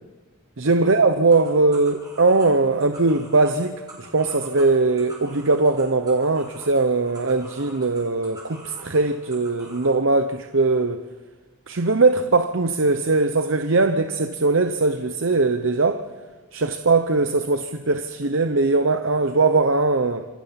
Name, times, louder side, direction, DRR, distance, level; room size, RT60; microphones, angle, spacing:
voice 1, 0.6-11.1 11.7-16.0 16.5-20.3, right 3 dB, 60° right, 0.8 m, -20 dB
sound 1, 1.3-10.0, right 2 dB, 15° right, 5.2 m, -45 dB
26.5 x 17.0 x 5.9 m
head